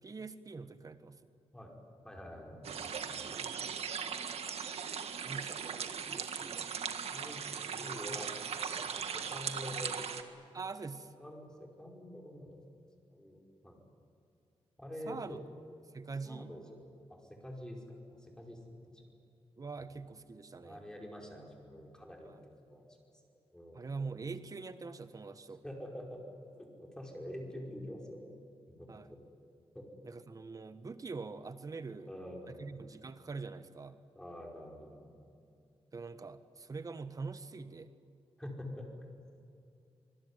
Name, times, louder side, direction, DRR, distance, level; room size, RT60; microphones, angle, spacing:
voice 1, 0.0-1.2 5.2-6.7 10.5-11.1 15.1-15.4 15.9-16.5 19.6-20.8 22.2-22.5 23.7-25.6 28.9-29.1 30.0-32.1 32.5-33.9 35.9-37.9, right 4 dB, 35° right, 11 dB, 1.4 m, -44 dB
voice 2, 2.0-3.5 7.1-7.4 7.8-8.3 8.7-10.0 11.2-12.6 13.1-13.8 14.8-15.4 16.2-16.8 17.1-19.0 19.8-19.9 20.6-22.3 22.7-22.8 23.5-23.9 25.5-26.2 26.5-28.3 28.7-29.2 29.7-29.9 32.0-32.7 34.1-35.2 38.4-38.9, left 1 dB, 5° left, 0 dB, 5.0 m, -46 dB
sound 1, 2.6-10.2, right 7 dB, 80° right, 1.7 m, -39 dB
26.0 x 21.5 x 9.8 m, 2.5 s
wide cardioid pair, 130°, 10 cm